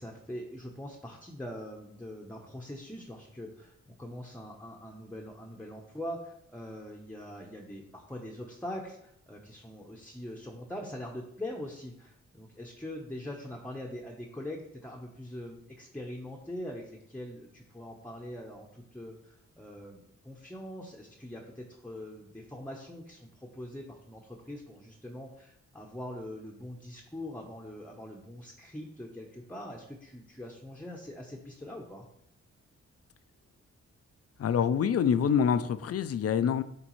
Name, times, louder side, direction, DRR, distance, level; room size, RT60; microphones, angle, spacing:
voice 1, 0.0-32.0, left 1 dB, 5° left, -1 dB, 0.8 m, -43 dB
voice 2, 34.4-36.6, left 7 dB, 55° left, 13 dB, 0.4 m, -26 dB
9.5 x 3.6 x 3.1 m, 0.74 s
cardioid pair, 90°, 29 cm